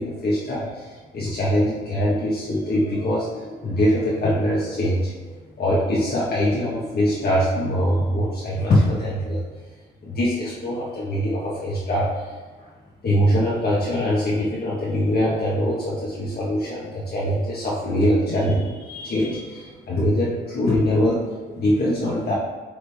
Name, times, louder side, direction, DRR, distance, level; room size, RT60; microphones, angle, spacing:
voice 1, 0.0-5.1 5.6-9.4 10.0-12.4 13.0-21.2 21.5-22.3, equal, 50° left, -8 dB, 1.5 m, -23 dB
8.2 x 3.8 x 3.5 m, 1.3 s
cardioid pair, 90°, 20 cm